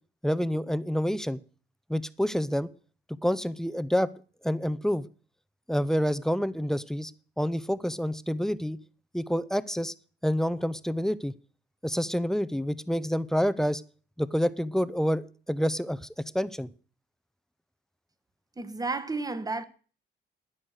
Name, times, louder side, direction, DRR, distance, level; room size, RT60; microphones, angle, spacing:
voice 1, 0.2-1.4 1.9-2.7 3.2-4.1 4.4-5.0 5.7-7.1 7.4-8.8 9.1-9.9 10.2-11.3 11.8-13.8 14.2-16.0 16.3-16.7, equal, ahead, 0.8 m, -28 dB
voice 2, 18.6-19.6, right 3 dB, 20° right, 1.5 m, -32 dB
13.5 x 10.0 x 6.6 m
cardioid pair, 90°, 20 cm